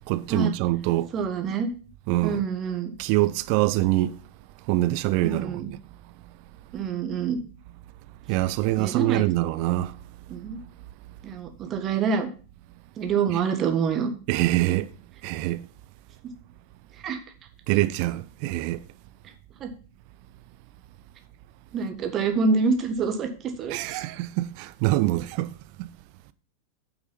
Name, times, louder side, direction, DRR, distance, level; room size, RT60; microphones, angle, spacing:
voice 1, 0.1-1.1 2.1-2.4 3.0-4.2 4.7-5.8 8.3-9.9 14.3-14.9 15.2-15.6 17.7-18.8 23.7-25.5 25.8-25.9, right 17 dB, 45° right, 0.6 m, -24 dB
voice 2, 1.1-1.7 2.2-2.9 5.2-5.7 6.7-7.4 8.8-9.2 10.3-10.6 11.2-12.3 13.0-14.1 17.0-17.2 19.6-19.7 21.7-24.0, right 5 dB, 30° right, 1.6 m, -26 dB
9.3 x 6.0 x 5.6 m
figure-of-eight pair, 90°, 0 cm